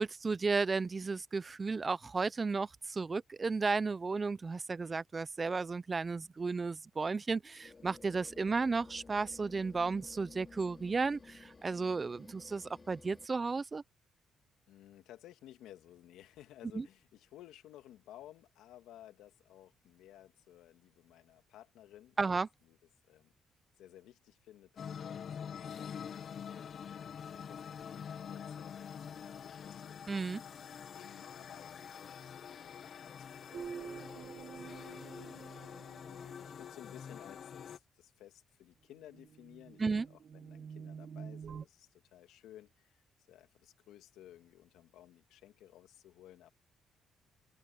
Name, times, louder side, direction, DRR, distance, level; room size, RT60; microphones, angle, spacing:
voice 1, 0.0-13.8 16.7-16.8 22.2-22.5 30.1-30.4 39.8-40.1, right 4 dB, 30° right, 0.7 m, -34 dB
sound 1, 7.6-13.3, left 4 dB, 30° left, 2.7 m, -55 dB
voice 2, 14.7-22.8 23.0-23.3 23.8-30.0 30.5-35.5 36.1-46.5, left 13 dB, 90° left, 2.1 m, -57 dB
sound 2, 24.8-37.8, left 7 dB, 55° left, 0.8 m, -46 dB
sound 3, 33.5-36.6 39.0-41.7, right 7 dB, 55° right, 1.2 m, -48 dB
open air
cardioid pair, 90°, 0 cm